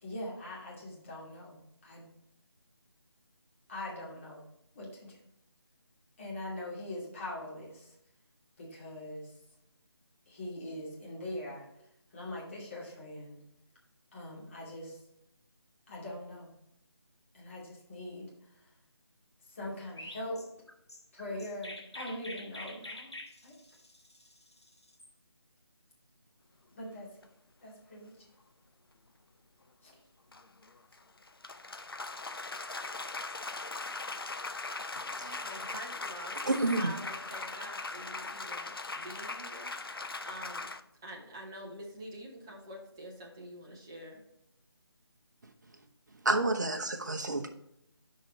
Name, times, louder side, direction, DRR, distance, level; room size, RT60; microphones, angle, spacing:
voice 1, 0.0-2.0 3.7-4.4 4.7-5.2 6.2-7.9 8.6-9.3 10.3-11.7 12.1-13.4 14.1-15.0 15.9-16.5 17.3-18.7 19.4-20.4 21.1-23.1 23.4-23.6 26.7-27.1 27.6-28.2 29.8-29.9, left 1 dB, 30° left, -5 dB, 2.5 m, -42 dB
Chirp tweet, 20.0-25.1, left 1 dB, 85° left, 1.4 m, -47 dB
sound 1, 27.2-27.3 30.3-40.8, left 3 dB, 60° left, 0.6 m, -40 dB
voice 2, 35.2-40.7 41.0-44.2, right 1 dB, 10° right, -2 dB, 0.6 m, -47 dB
voice 3, 36.5-36.9 46.2-47.5, right 2 dB, 45° right, 6 dB, 0.8 m, -29 dB
6.5 x 5.3 x 4.4 m, 0.80 s
figure-of-eight pair, 160°, 14 cm